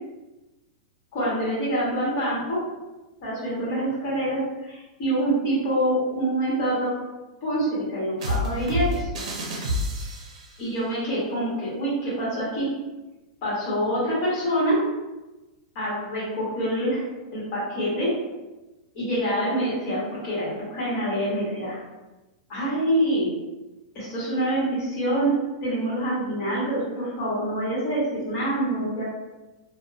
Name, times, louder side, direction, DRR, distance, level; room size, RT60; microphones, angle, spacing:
voice 1, 1.1-2.6 3.2-6.9 7.4-9.1 10.6-12.7 13.4-14.8 15.7-17.0 17.3-18.2 18.9-21.8 22.5-23.3 23.9-25.4 25.6-29.0, right 1 dB, 30° left, -7 dB, 1.2 m, -26 dB
sound 1, 8.2-10.5, left 1 dB, 65° right, 0.7 m, -28 dB
2.6 x 2.2 x 2.5 m, 1.1 s
supercardioid pair, 170°, 4 cm